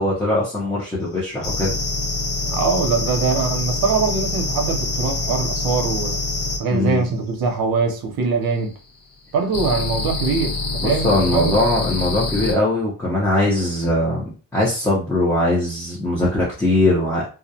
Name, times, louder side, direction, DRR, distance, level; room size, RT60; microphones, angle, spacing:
voice 1, 0.0-1.8 6.7-7.1 10.8-17.3, left 1 dB, 5° left, 0.6 m, -21 dB
sound 1, 1.4-6.6 9.5-12.5, left 2 dB, 75° left, 1.0 m, -25 dB
voice 2, 2.4-6.2 6.6-8.7 9.3-11.5, right 4 dB, 80° right, 0.7 m, -22 dB
2.3 x 2.1 x 2.7 m
wide cardioid pair, 155°, 35 cm